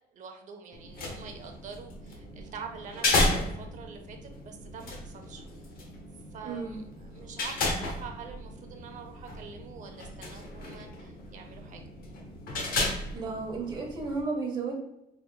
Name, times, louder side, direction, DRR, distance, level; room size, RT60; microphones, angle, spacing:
voice 1, 0.1-5.4 6.3-11.8, right 6 dB, 45° right, 4 dB, 0.7 m, -46 dB
sound 1, 0.7-14.2, left 2 dB, 60° left, 0.9 m, -34 dB
voice 2, 6.4-6.8 13.1-14.8, right 4 dB, 25° right, -1 dB, 1.1 m, -33 dB
4.7 x 3.4 x 2.3 m, 0.86 s
cardioid pair, 170°, 17 cm